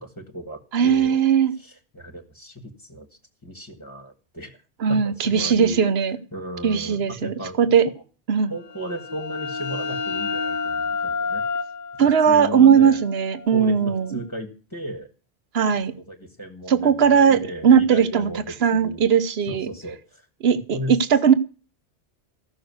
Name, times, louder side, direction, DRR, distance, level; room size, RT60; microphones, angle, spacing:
voice 1, 0.0-1.2 1.6-3.1 3.4-4.5 4.9-5.9 6.3-7.7 8.5-11.4 12.0-13.0 13.5-15.1 15.9-19.1 19.5-20.3 20.7-21.0, equal, 20° left, 4 dB, 1.7 m, -35 dB
voice 2, 0.7-1.5 4.8-6.2 6.6-7.9 8.3-8.5 12.0-14.2 15.5-15.9 16.7-18.3 18.6-19.7 20.4-21.3, right 7 dB, 65° right, 11 dB, 1.2 m, -18 dB
sound 1, 8.6-14.1, left 5 dB, 50° left, 0.9 m, -30 dB
15.5 x 6.7 x 9.4 m, 0.36 s
omnidirectional pair, 1.1 m